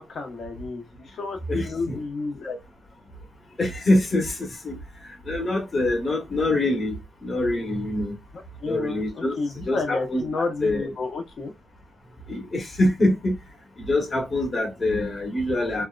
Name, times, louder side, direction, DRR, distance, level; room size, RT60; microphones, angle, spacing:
voice 1, 0.0-2.6 8.6-9.0 9.4-11.5, left 3 dB, 65° left, 0.9 m, -31 dB
voice 2, 1.5-2.0 3.6-4.8 5.3-8.1 8.7-10.9 12.3-13.3 13.9-15.9, left 1 dB, 35° left, 1.1 m, -25 dB
2.7 x 2.2 x 2.4 m
cardioid pair, 110°, 0 cm